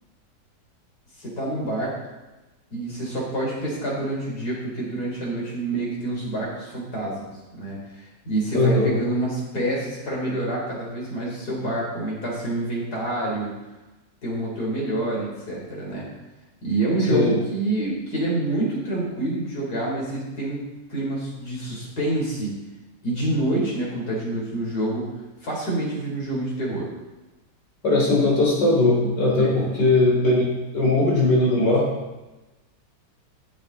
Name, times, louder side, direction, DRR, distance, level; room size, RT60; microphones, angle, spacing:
voice 1, 1.2-2.0 2.7-13.5 14.2-16.1 16.6-20.6 20.9-22.5 23.0-25.1 25.4-26.9 29.4-29.6, right 1 dB, 65° left, -4 dB, 4.4 m, -27 dB
voice 2, 8.5-9.0 17.1-17.3 27.8-31.9, left 2 dB, 80° left, -3 dB, 3.9 m, -19 dB
14.5 x 7.9 x 4.1 m, 1.1 s
omnidirectional pair, 1.8 m